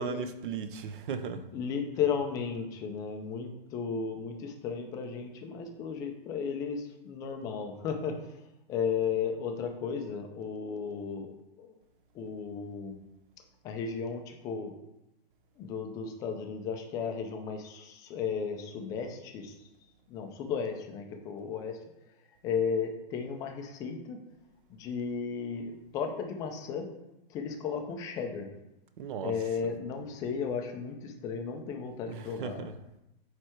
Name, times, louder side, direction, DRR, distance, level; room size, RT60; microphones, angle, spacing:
voice 1, 0.0-1.4 29.0-29.3 32.1-32.7, right 6 dB, 60° right, 10 dB, 0.8 m, -36 dB
voice 2, 1.5-8.4 8.7-11.7 12.1-13.0 13.6-14.7 15.6-19.6 20.1-21.8 22.4-24.2 24.7-26.9 27.3-28.5 29.2-32.7, left 6 dB, 10° left, 4 dB, 0.4 m, -34 dB
9.2 x 3.3 x 4.4 m, 0.89 s
hypercardioid pair, 155°, 30 cm